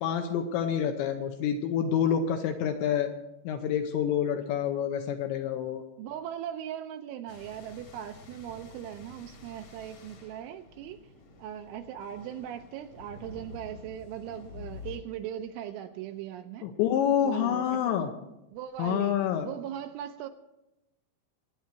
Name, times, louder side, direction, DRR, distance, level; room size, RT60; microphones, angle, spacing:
voice 1, 0.0-3.1 3.4-5.8 16.6-18.1 18.8-19.5, left 9 dB, 80° left, 2.8 m, -27 dB
voice 2, 6.0-11.1 11.4-16.7 17.2-18.0 18.5-20.3, right 10 dB, 80° right, 2.9 m, -39 dB
sound 1, 7.3-15.0, left 4 dB, 55° left, 1.8 m, -48 dB
24.5 x 9.4 x 4.6 m
omnidirectional pair, 6.0 m